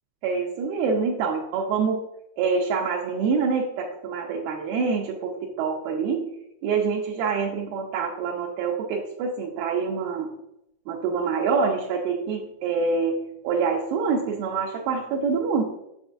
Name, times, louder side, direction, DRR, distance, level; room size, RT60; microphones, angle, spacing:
voice 1, 0.2-2.0 2.4-6.3 6.6-10.3 10.9-15.6, right 5 dB, 80° right, -1 dB, 2.4 m, -26 dB
7.1 x 6.9 x 2.5 m, 0.84 s
omnidirectional pair, 4.7 m